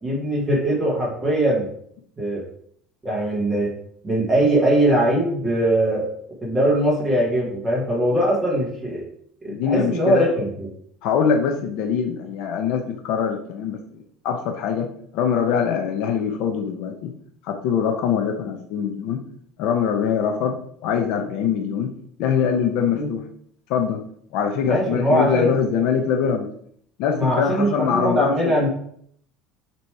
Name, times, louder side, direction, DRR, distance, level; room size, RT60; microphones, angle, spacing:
voice 1, 0.0-1.7 2.2-2.4 3.0-3.7 4.0-6.1 6.4-9.0 9.4-10.7 23.0-23.1 24.6-25.5 27.2-28.7, right 1 dB, 10° right, -4 dB, 1.6 m, -21 dB
voice 2, 9.5-10.3 11.0-13.8 14.2-14.9 15.1-17.1 17.4-19.2 19.6-20.6 20.8-21.9 22.2-23.2 23.7-24.0 24.3-26.5 27.0-28.5, left 7 dB, 60° left, 3 dB, 0.8 m, -23 dB
6.7 x 3.1 x 4.7 m, 0.65 s
cardioid pair, 160°, 0 cm